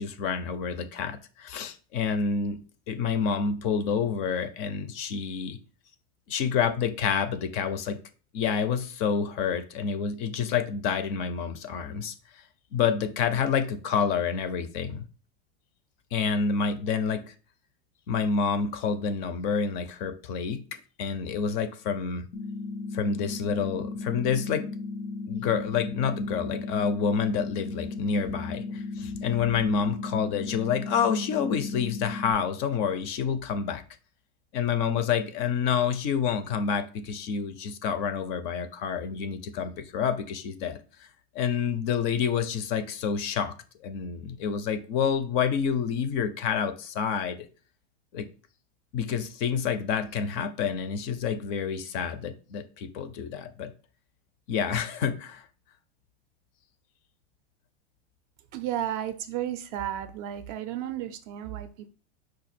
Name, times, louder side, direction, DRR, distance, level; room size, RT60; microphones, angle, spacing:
voice 1, 0.0-2.6 2.9-5.6 6.3-8.0 8.3-12.1 12.7-15.1 16.1-17.2 18.1-22.3 22.9-24.6 25.3-33.8 34.5-41.1 41.3-43.5 43.8-47.4 48.1-48.3 48.9-53.7 54.5-55.4, left 6 dB, 40° left, 0.4 m, -28 dB
sound 1, 22.3-32.3, left 3 dB, 75° left, 0.7 m, -35 dB
voice 2, 58.5-61.9, right 11 dB, 40° right, 0.4 m, -33 dB
5.1 x 2.3 x 4.2 m
supercardioid pair, 145°, 33 cm